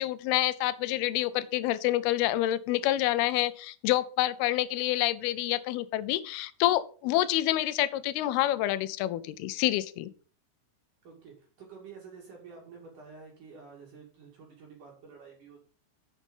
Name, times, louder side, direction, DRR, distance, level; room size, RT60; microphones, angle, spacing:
voice 1, 0.0-10.1, left 15 dB, 80° left, 15 dB, 2.5 m, -27 dB
voice 2, 11.0-15.6, right 5 dB, 55° right, -1 dB, 3.5 m, -49 dB
8.8 x 7.4 x 5.4 m, 0.40 s
omnidirectional pair, 4.8 m